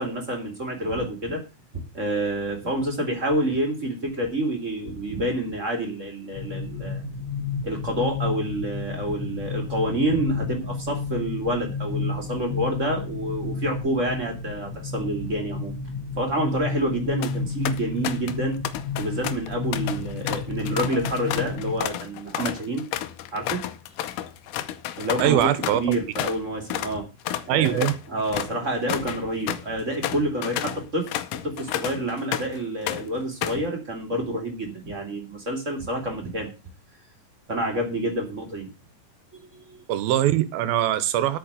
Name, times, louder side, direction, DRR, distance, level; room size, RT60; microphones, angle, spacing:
voice 1, 0.0-1.4 1.7-7.0 7.6-15.8 16.2-18.6 19.0-22.8 23.3-23.7 25.0-27.0 27.4-31.1 31.4-36.5 37.5-38.7 39.3-39.8, right 1 dB, 25° right, 2.5 m, -28 dB
sound 1, 6.3-21.9, left 4 dB, 40° left, 2.4 m, -32 dB
sound 2, 17.0-17.4 17.7-18.4 18.6-26.4 26.7-26.9 27.2-32.6 32.9-33.7, left 12 dB, 75° left, 2.1 m, -31 dB
voice 2, 25.2-25.8 27.5-28.0 39.9-41.4, right 12 dB, 85° right, 2.8 m, -22 dB
9.0 x 5.7 x 8.2 m
omnidirectional pair, 4.2 m